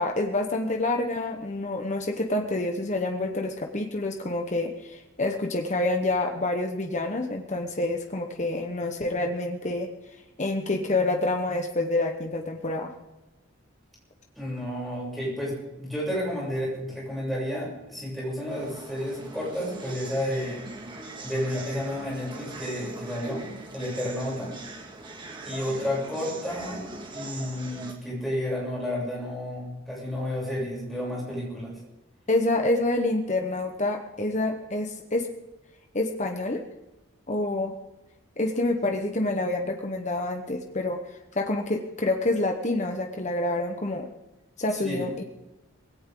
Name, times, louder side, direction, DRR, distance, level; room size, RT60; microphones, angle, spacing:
voice 1, 0.0-9.9 10.4-12.9 32.3-35.3 35.9-36.6 37.3-37.7 38.4-41.0 41.3-44.1 44.6-45.2, left 2 dB, 35° left, 4 dB, 1.1 m, -27 dB
voice 2, 14.4-20.6 21.2-23.4 23.7-24.5 25.5-26.8 27.1-31.7 44.7-45.1, equal, ahead, -6 dB, 7.9 m, -31 dB
sound 1, 18.5-27.9, right 2 dB, 25° right, 2.0 m, -41 dB
19.5 x 17.5 x 3.9 m, 1.0 s
head